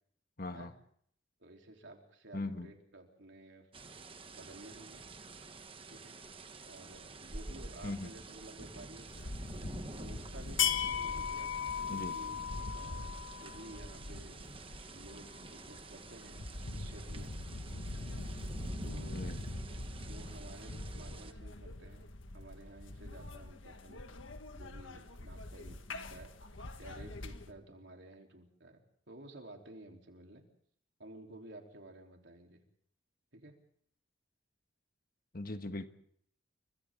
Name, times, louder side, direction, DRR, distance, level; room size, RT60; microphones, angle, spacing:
voice 1, 0.4-0.7 2.3-2.7 7.8-8.1 11.9-12.2 19.1-19.4 35.3-35.9, left 2 dB, 45° left, 1.4 m, -39 dB
voice 2, 1.4-3.7 4.4-5.0 5.9-6.1 6.7-9.3 9.9-11.5 11.9-12.4 12.7-13.1 13.4-14.4 14.9-16.4 16.7-17.3 18.8-19.3 20.1-24.0 24.5-25.8 26.1-26.3 26.8-28.8 29.1-30.4 31.0-32.6 33.3-33.5, right 1 dB, 65° right, 3.6 m, -53 dB
sound 1, 3.7-21.3, right 2 dB, 25° right, 1.2 m, -49 dB
sound 2, 9.1-27.5, left 5 dB, 75° left, 1.7 m, -40 dB
30.0 x 24.0 x 3.8 m
head